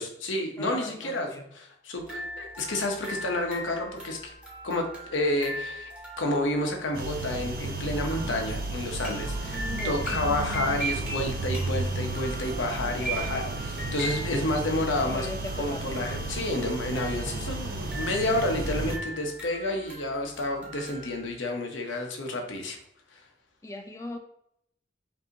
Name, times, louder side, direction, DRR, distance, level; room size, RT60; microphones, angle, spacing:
voice 1, 0.0-1.3 1.8-4.3 4.6-4.9 5.1-5.9 6.2-15.3 15.6-22.8, left 1 dB, 80° left, 3 dB, 0.8 m, -30 dB
voice 2, 0.6-1.5 9.4-10.1 12.8-13.5 15.0-16.0 23.6-24.2, left 2 dB, 15° left, 4 dB, 0.4 m, -39 dB
sound 1, 2.0-21.3, right 2 dB, 5° right, 1.1 m, -40 dB
sound 2, 6.9-19.0, right 2 dB, 50° right, 0.5 m, -33 dB
5.3 x 2.7 x 2.7 m, 0.73 s
head